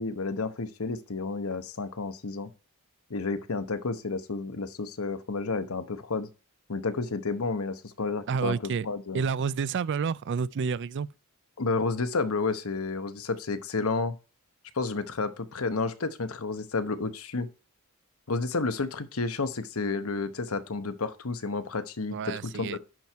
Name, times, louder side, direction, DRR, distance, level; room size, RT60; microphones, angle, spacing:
voice 1, 0.0-2.5 3.1-6.3 6.7-9.3 11.6-14.1 14.7-17.5 18.3-22.8, left 3 dB, 70° left, 1.0 m, -31 dB
voice 2, 8.3-8.9 9.1-11.1 22.1-22.8, right 6 dB, 55° right, 0.4 m, -29 dB
11.0 x 4.5 x 4.5 m
head